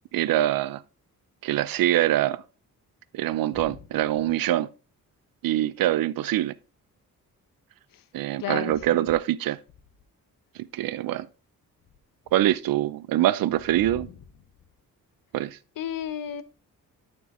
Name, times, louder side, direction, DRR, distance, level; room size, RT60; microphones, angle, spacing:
voice 1, 0.1-0.8 1.4-2.4 3.1-4.7 5.4-6.5 8.1-9.6 10.7-11.3 12.3-14.1 15.3-15.6, right 13 dB, 80° right, 0.5 m, -24 dB
voice 2, 8.4-9.1 13.8-14.1 15.8-16.4, left 9 dB, 70° left, 0.9 m, -34 dB
12.0 x 4.5 x 3.6 m
cardioid pair, 105°, 35 cm